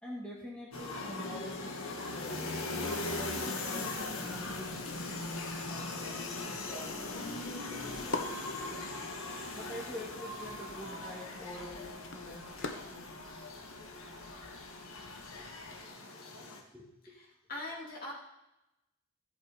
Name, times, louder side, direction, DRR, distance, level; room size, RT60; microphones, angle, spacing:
voice 1, 0.0-8.9 9.5-13.1 15.3-15.8 16.4-16.9, left 1 dB, 5° left, -5 dB, 2.1 m, -47 dB
sound 1, 0.7-16.6, left 2 dB, 75° left, 1.7 m, -40 dB
sound 2, 2.9-15.8, left 3 dB, 60° left, 1.1 m, -48 dB
voice 2, 15.2-15.7 17.0-18.1, left 2 dB, 40° left, -3 dB, 3.0 m, -44 dB
15.0 x 8.1 x 5.1 m, 0.91 s
head